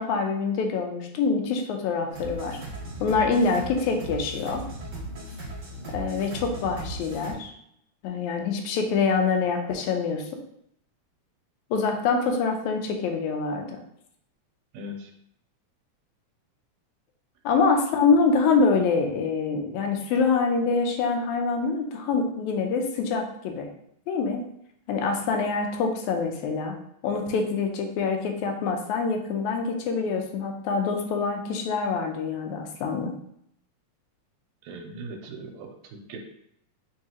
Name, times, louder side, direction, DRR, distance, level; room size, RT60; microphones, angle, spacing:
voice 1, 0.0-2.6 3.0-4.6 5.9-7.5 8.0-10.2 11.7-13.8 17.5-23.7 24.1-24.4 24.9-26.7 27.0-33.1, left 4 dB, 85° left, 4 dB, 2.0 m, -25 dB
sound 1, 2.1-7.3, right 1 dB, 50° right, 1.4 m, -37 dB
voice 2, 14.7-15.1 34.6-36.2, right 1 dB, 80° right, 4 dB, 1.8 m, -39 dB
4.7 x 3.1 x 2.8 m, 0.73 s
omnidirectional pair, 3.3 m